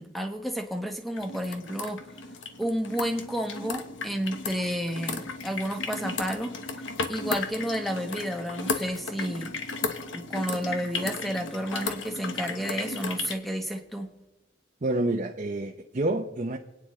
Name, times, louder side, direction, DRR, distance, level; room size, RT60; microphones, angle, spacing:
voice 1, 0.0-2.0 2.6-6.8 7.1-9.5 10.1-14.1, equal, ahead, 1.2 m, -31 dB
sound 1, 1.2-13.4, left 4 dB, 85° left, 1.2 m, -35 dB
voice 2, 14.8-16.6, right 2 dB, 40° right, 0.7 m, -28 dB
28.0 x 9.6 x 3.2 m
head